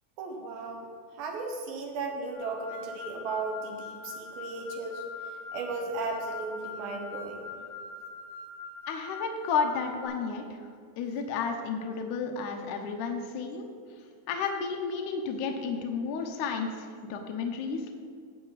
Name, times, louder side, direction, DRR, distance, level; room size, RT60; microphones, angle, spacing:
voice 1, 0.2-0.9 1.2-5.0 5.5-7.5, right 3 dB, 75° right, 2 dB, 3.0 m, -35 dB
sound 1, 2.3-10.1, left 4 dB, 25° right, 1.7 m, -43 dB
voice 2, 8.9-10.4 11.0-13.7 14.3-17.9, left 5 dB, 75° left, 3 dB, 1.9 m, -32 dB
16.5 x 6.8 x 4.0 m, 2.1 s
omnidirectional pair, 4.5 m